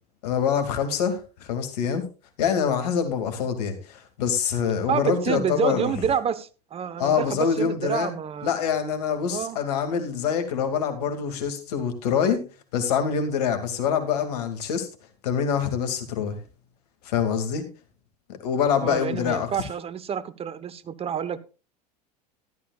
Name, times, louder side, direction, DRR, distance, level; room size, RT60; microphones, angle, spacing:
voice 1, 0.2-2.0 2.4-5.9 7.0-8.1 8.4-12.4 12.7-14.9 15.2-16.4 17.0-17.7 18.4-19.5, left 7 dB, 70° left, 8 dB, 2.3 m, -25 dB
voice 2, 4.9-8.6 9.3-9.6 18.8-21.4, right 8 dB, 30° right, 15 dB, 1.0 m, -28 dB
13.5 x 11.5 x 2.4 m, 0.32 s
hypercardioid pair, 90°, 21 cm